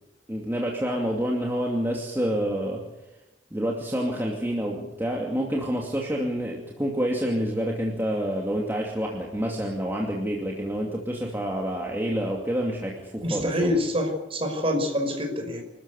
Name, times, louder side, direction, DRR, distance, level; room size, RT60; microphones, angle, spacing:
voice 1, 0.3-2.8 3.5-13.8, equal, 10° right, -1 dB, 2.5 m, -28 dB
voice 2, 13.2-15.6, left 1 dB, 30° right, 4 dB, 5.4 m, -26 dB
27.0 x 13.5 x 8.3 m, 0.98 s
head